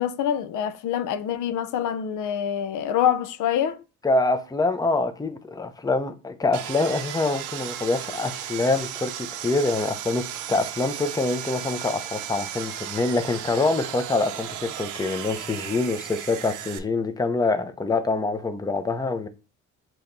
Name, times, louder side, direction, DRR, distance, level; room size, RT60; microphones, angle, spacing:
voice 1, 0.0-3.8, left 9 dB, 80° left, 0.5 m, -25 dB
voice 2, 4.0-19.3, left 3 dB, 15° left, 0.6 m, -25 dB
Sawing, 6.5-16.8, right 11 dB, 90° right, 0.6 m, -35 dB
6.3 x 2.9 x 2.6 m
cardioid pair, 90°, 30 cm